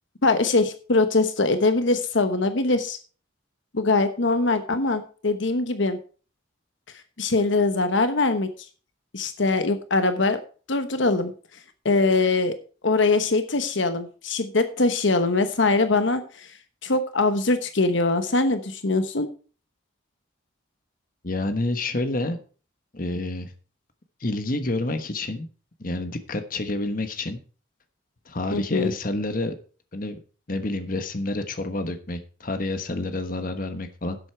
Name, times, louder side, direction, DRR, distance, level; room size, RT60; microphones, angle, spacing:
voice 1, 0.2-3.0 3.7-6.0 7.2-8.5 9.1-10.4 10.7-11.3 11.8-12.5 12.8-16.6 16.8-19.3 28.5-28.9, left 3 dB, 70° left, 9 dB, 1.1 m, -22 dB
voice 2, 21.2-22.4 22.9-23.5 24.2-25.5 25.8-27.4 28.3-29.5 29.9-30.2 30.5-34.2, left 2 dB, 45° left, 9 dB, 1.2 m, -28 dB
11.5 x 8.0 x 4.5 m, 0.38 s
head